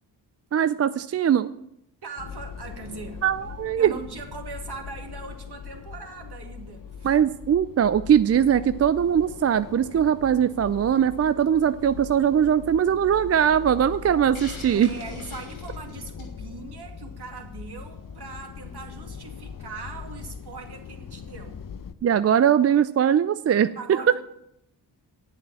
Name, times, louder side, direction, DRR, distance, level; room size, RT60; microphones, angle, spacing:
voice 1, 0.5-1.5 3.2-3.9 7.0-14.9 22.0-23.8, right 9 dB, 35° right, 0.4 m, -21 dB
voice 2, 2.0-3.2 3.8-7.1 14.7-21.6 23.8-24.2, right 4 dB, 55° right, 2.2 m, -40 dB
sound 1, 2.2-21.9, left 7 dB, 45° left, 0.8 m, -41 dB
Hiss, 14.3-16.4, left 3 dB, 80° left, 3.2 m, -44 dB
8.8 x 7.4 x 7.1 m
supercardioid pair, 45°, 48 cm